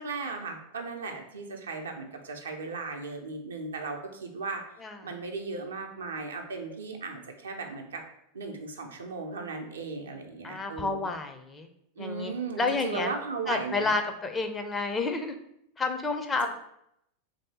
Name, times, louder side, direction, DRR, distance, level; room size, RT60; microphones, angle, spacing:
voice 1, 0.0-4.6 5.0-8.0 8.3-11.1 12.0-13.9, right 4 dB, 70° right, 3 dB, 0.6 m, -36 dB
voice 2, 10.4-11.7 12.0-12.3 12.6-13.1 13.5-15.4 15.8-16.5, left 3 dB, 15° left, 6 dB, 0.4 m, -30 dB
3.2 x 2.7 x 4.1 m, 0.75 s
figure-of-eight pair, 85°, 0 cm